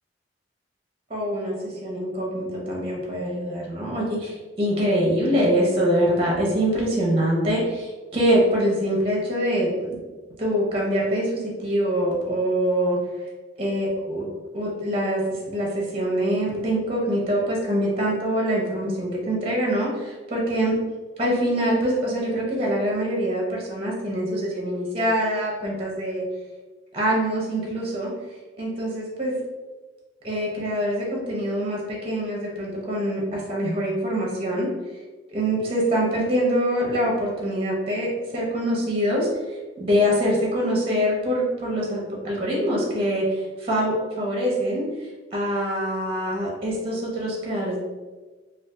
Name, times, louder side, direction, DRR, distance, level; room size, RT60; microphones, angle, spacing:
voice 1, 1.1-10.0 10.4-13.0 13.6-14.3 14.5-20.8 21.2-26.2 26.9-28.1 28.6-29.3 30.2-34.7 35.3-39.3 39.8-44.8 45.3-47.8, equal, 30° right, -3 dB, 0.7 m, -24 dB
2.6 x 2.3 x 3.4 m, 1.3 s
head